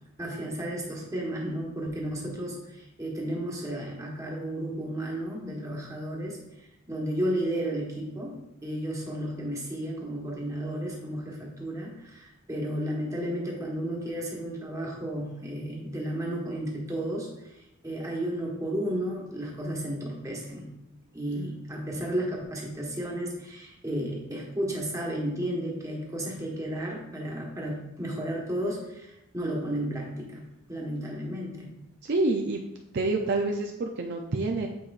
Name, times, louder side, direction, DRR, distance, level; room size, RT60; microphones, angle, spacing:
voice 1, 0.2-20.7 21.1-30.4 30.7-31.7, right 1 dB, 15° right, -2 dB, 1.2 m, -33 dB
voice 2, 32.0-32.6 32.9-34.7, right 2 dB, 50° right, 2 dB, 0.4 m, -27 dB
8.4 x 4.6 x 2.4 m, 0.89 s
head